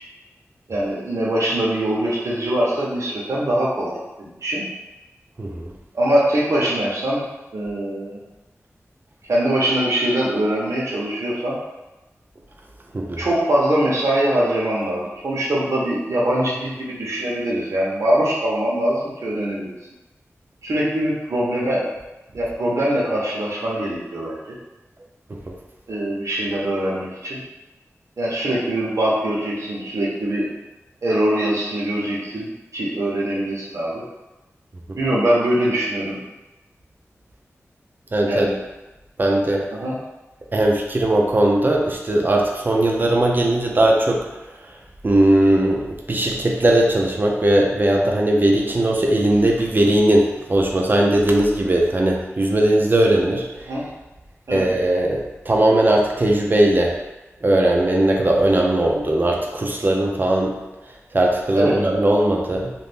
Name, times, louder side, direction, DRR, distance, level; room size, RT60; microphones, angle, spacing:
voice 1, 0.7-4.6 5.9-7.2 7.5-8.2 9.3-11.5 13.2-19.7 20.6-21.8 22.3-24.4 25.9-27.4 28.2-30.5 31.0-34.0 35.0-36.2 38.2-38.6 39.7-39.9 53.7-53.9 54.5-54.7 61.5-61.8, right 1 dB, 75° right, -5 dB, 0.9 m, -22 dB
voice 2, 38.1-38.5 39.2-39.6 40.5-44.2 45.0-45.8 46.1-53.4 54.5-56.9 57.4-60.5 61.1-62.7, right 1 dB, 40° right, 0 dB, 0.5 m, -18 dB
2.5 x 2.5 x 3.5 m, 1.1 s
wide cardioid pair, 85°, 5 cm